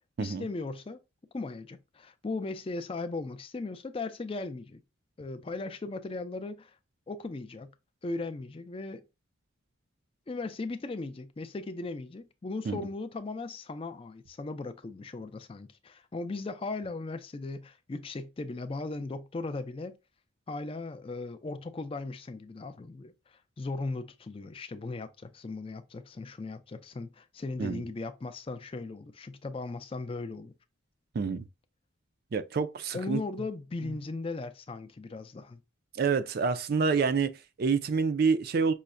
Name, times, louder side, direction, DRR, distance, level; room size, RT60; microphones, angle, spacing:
voice 1, 0.2-1.0 1.3-4.8 5.2-6.8 7.1-7.7 8.0-9.1 10.3-19.9 20.5-30.5 32.9-35.6, left 3 dB, 25° left, 0.3 m, -37 dB
voice 2, 32.3-33.2 33.8-33.9 35.9-38.7, right 5 dB, 45° right, 0.3 m, -28 dB
5.5 x 2.1 x 2.4 m
head